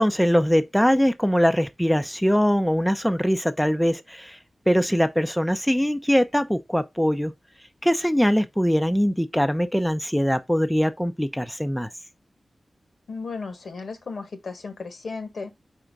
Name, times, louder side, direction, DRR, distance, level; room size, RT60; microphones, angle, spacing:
voice 1, 0.0-4.4 4.7-7.3 7.8-11.9, equal, ahead, 0.5 m, -22 dB
voice 2, 13.1-15.5, left 4 dB, 75° left, 1.6 m, -35 dB
4.9 x 4.5 x 5.2 m
wide cardioid pair, 115°, 0 cm